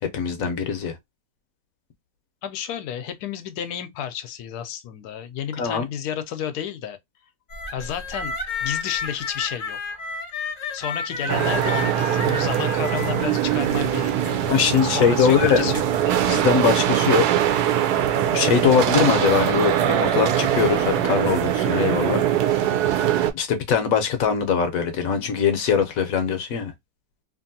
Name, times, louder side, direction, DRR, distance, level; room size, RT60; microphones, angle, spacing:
voice 1, 0.1-0.9 5.6-5.9 14.5-15.7 16.3-17.3 18.3-22.2 23.3-26.7, left 7 dB, 70° left, 1.1 m, -21 dB
voice 2, 2.4-7.0 7.7-8.4 8.6-10.0 10.7-15.9 18.3-18.6, left 9 dB, 85° left, 1.1 m, -31 dB
sound 1, 7.5-14.1, left 4 dB, 45° left, 0.8 m, -32 dB
sound 2, 11.1-16.5, right 5 dB, 60° right, 1.2 m, -38 dB
sound 3, 11.3-23.3, right 10 dB, 85° right, 1.1 m, -22 dB
2.8 x 2.6 x 2.6 m
omnidirectional pair, 1.6 m